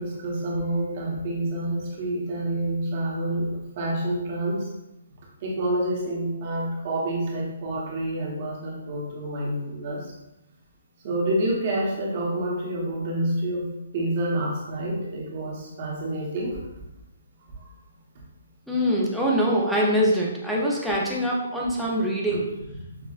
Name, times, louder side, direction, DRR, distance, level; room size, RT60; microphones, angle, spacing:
voice 1, 0.0-3.5 3.8-4.6 5.4-10.0 11.0-13.7 13.9-16.6, right 1 dB, 30° right, -4 dB, 1.0 m, -28 dB
voice 2, 18.7-22.5, equal, ahead, -6 dB, 0.6 m, -23 dB
6.0 x 2.3 x 2.4 m, 0.93 s
hypercardioid pair, 170°, 0 cm